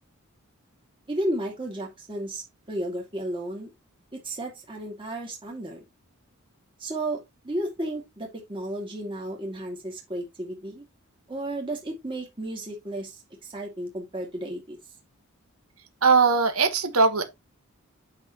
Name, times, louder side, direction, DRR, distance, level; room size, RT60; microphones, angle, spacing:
voice 1, 1.1-3.7 4.1-5.8 6.8-10.8 11.3-14.8, right 1 dB, 25° right, 2.2 m, -33 dB
voice 2, 16.0-17.2, right 4 dB, 80° right, 1.4 m, -20 dB
8.9 x 5.8 x 3.0 m
head